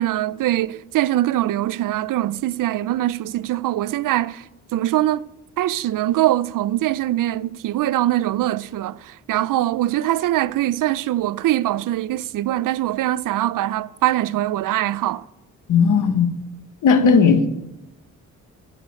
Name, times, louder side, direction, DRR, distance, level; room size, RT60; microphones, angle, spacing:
voice 1, 0.0-5.3 5.6-15.3, right 14 dB, 80° right, 0.5 m, -22 dB
voice 2, 15.7-16.3 16.8-17.5, left 5 dB, 75° left, 1.4 m, -15 dB
10.5 x 7.9 x 9.1 m
cardioid pair, 115°, 32 cm